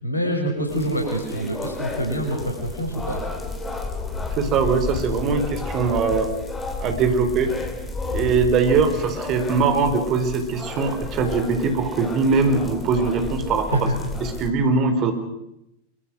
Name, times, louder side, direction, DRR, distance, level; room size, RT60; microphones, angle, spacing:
voice 1, 0.0-3.2 13.7-13.9, equal, 80° left, 2 dB, 5.0 m, -25 dB
sound 1, 0.7-14.5, left 3 dB, 15° left, 3.9 m, -32 dB
voice 2, 4.4-6.3 6.8-7.5 8.1-13.9 14.2-15.1, right 4 dB, 35° right, 7 dB, 4.2 m, -21 dB
25.5 x 24.0 x 6.4 m, 0.83 s
figure-of-eight pair, 90°, 0 cm